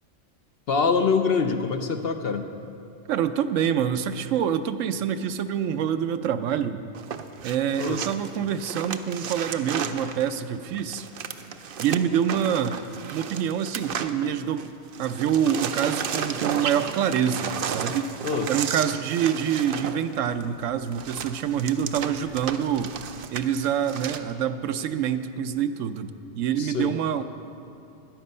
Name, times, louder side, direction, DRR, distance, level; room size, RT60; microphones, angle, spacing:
voice 1, 0.7-2.5 7.8-8.0 18.2-18.5 26.6-27.0, left 5 dB, 55° left, 6 dB, 0.8 m, -24 dB
voice 2, 3.1-6.8 7.4-11.1 11.8-12.8 13.1-14.7 15.0-18.2 18.5-22.9 23.3-27.2, right 8 dB, 75° right, 10 dB, 0.9 m, -26 dB
sound 1, 6.9-14.7 14.9-24.2, right 7 dB, 60° right, 0.6 m, -33 dB
13.5 x 10.0 x 5.4 m, 2.7 s
omnidirectional pair, 1.3 m